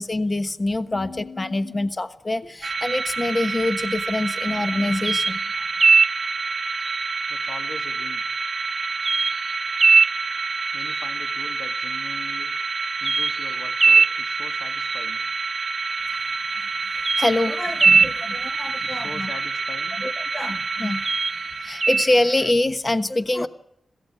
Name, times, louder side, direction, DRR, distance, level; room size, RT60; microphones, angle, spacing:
voice 1, 0.0-5.4 16.1-16.2 17.2-19.3 20.0-21.0 21.6-23.5, left 2 dB, 30° left, 11 dB, 1.2 m, -25 dB
voice 2, 0.8-1.8 2.4-2.5 7.3-8.2 10.7-12.5 13.0-15.2 18.8-20.0, left 4 dB, 80° left, 8 dB, 1.7 m, -41 dB
sound 1, 2.6-22.5, right 4 dB, 55° right, 0.9 m, -23 dB
22.0 x 16.5 x 8.3 m, 0.72 s
cardioid pair, 60°, 0 cm